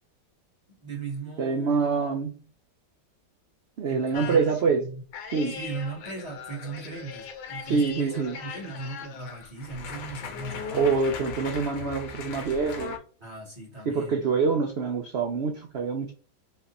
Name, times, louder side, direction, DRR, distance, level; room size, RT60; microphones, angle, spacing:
voice 1, 0.7-1.9 3.8-4.4 4.7-5.0 5.5-10.9 11.7-11.9 13.2-14.2, right 4 dB, 20° right, 1.2 m, -38 dB
voice 2, 1.4-2.4 3.8-4.8 5.3-5.6 7.6-8.4 10.7-13.0 13.9-16.1, right 5 dB, 75° right, 0.6 m, -25 dB
sound 1, 4.1-4.6 5.1-13.0, left 5 dB, 80° left, 1.3 m, -39 dB
3.2 x 2.4 x 4.0 m
omnidirectional pair, 1.9 m